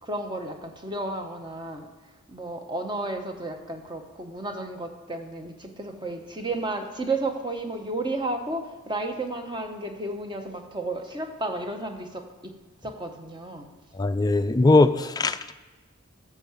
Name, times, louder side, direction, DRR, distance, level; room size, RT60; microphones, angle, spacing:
voice 1, 0.0-1.9 2.3-12.5 12.8-13.7, right 2 dB, 20° right, 5 dB, 1.1 m, -32 dB
voice 2, 14.0-15.5, left 2 dB, 20° left, 9 dB, 0.4 m, -20 dB
13.5 x 4.7 x 7.3 m, 1.2 s
head